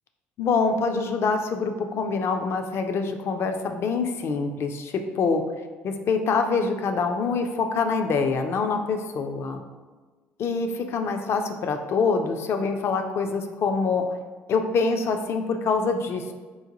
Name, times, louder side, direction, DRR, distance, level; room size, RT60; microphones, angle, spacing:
voice 1, 0.4-5.4 5.8-9.6 10.4-14.0 14.5-16.3, left 4 dB, 50° left, 5 dB, 0.4 m, -25 dB
3.8 x 2.2 x 2.9 m, 1.4 s
hypercardioid pair, 60°, 6 cm